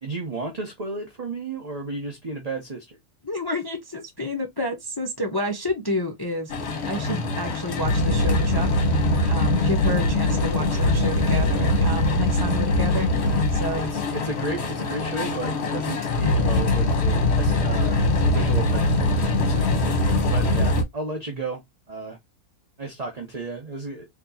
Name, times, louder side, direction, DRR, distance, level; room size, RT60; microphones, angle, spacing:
voice 1, 0.0-3.0 13.8-18.0 18.3-19.7 20.3-22.2 22.8-24.1, right 3 dB, 30° right, 0.9 m, -33 dB
voice 2, 3.2-6.5 6.9-8.7 9.3-13.9, equal, 25° left, 0.5 m, -30 dB
sound 1, 6.5-20.8, left 2 dB, 50° left, 1.2 m, -22 dB
4.4 x 2.9 x 2.7 m
omnidirectional pair, 1.6 m